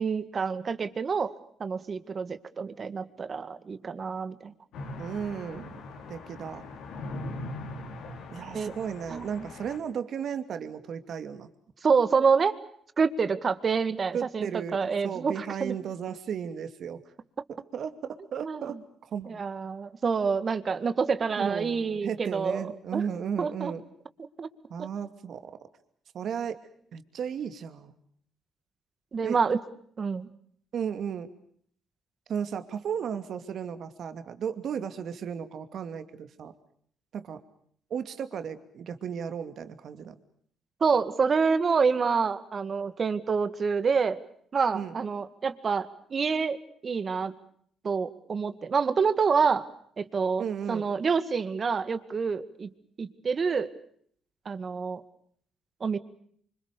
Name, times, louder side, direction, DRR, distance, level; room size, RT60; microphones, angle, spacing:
voice 1, 0.0-1.3 1.6-4.5 8.5-8.7 9.1-9.3 11.8-12.6 13.0-15.7 18.4-18.8 19.3-23.1 23.4-23.7 24.4-24.5 29.1-29.6 30.0-30.3 40.8-44.2 44.5-46.6 46.8-47.3 47.8-49.7 50.0-52.7 53.0-53.7 54.5-55.0 55.8-56.0, right 5 dB, 40° right, 12 dB, 2.0 m, -27 dB
sound 1, 4.7-9.8, left 2 dB, 80° left, 4.6 m, -40 dB
voice 2, 5.0-5.7 6.1-6.6 8.3-11.5 14.1-17.0 17.5-18.8 19.1-19.4 21.4-23.8 24.7-25.5 26.1-26.6 26.9-28.0 29.2-29.4 30.7-31.3 32.3-36.5 37.1-37.4 37.9-40.1 44.7-44.9 50.4-50.9, right 7 dB, 65° right, 9 dB, 2.6 m, -35 dB
26.0 x 25.5 x 6.8 m, 0.63 s
cardioid pair, 90°, 0 cm